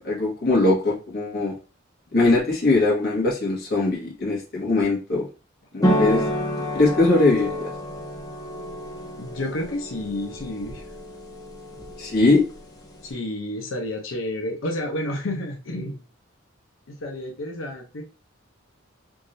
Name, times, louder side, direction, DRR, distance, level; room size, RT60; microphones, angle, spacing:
voice 1, 0.0-1.5 2.1-5.3 5.7-6.2 6.7-7.7 12.0-12.5, left 2 dB, 55° left, -5 dB, 1.5 m, -21 dB
sound 1, 5.8-13.1, equal, 20° left, 0.7 m, -29 dB
voice 2, 9.2-10.8 13.0-16.0 16.9-18.0, left 1 dB, 80° left, 0 dB, 0.7 m, -30 dB
3.6 x 3.1 x 2.6 m, 0.32 s
head